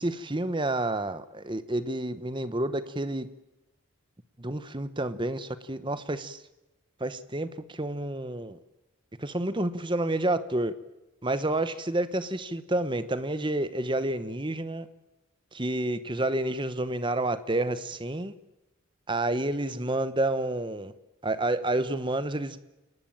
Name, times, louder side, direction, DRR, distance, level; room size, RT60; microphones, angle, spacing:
voice 1, 0.0-3.3 4.4-6.4 7.0-8.6 9.2-10.7 11.2-14.9 15.5-18.3 19.1-20.9 21.2-22.6, right 1 dB, 25° right, 13 dB, 1.1 m, -29 dB
27.5 x 19.0 x 8.9 m, 1.0 s
head